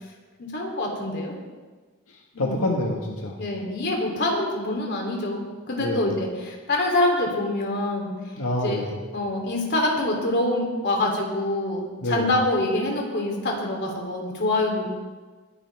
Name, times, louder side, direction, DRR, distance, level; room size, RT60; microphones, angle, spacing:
voice 1, 0.4-1.3 2.3-2.6 3.4-8.1 8.6-8.9 9.1-14.9, left 2 dB, 55° left, 0 dB, 3.0 m, -25 dB
voice 2, 2.4-3.4 5.8-6.1 8.4-8.9 12.0-12.3, left 1 dB, 90° left, -1 dB, 1.6 m, -26 dB
22.0 x 9.9 x 3.4 m, 1.4 s
head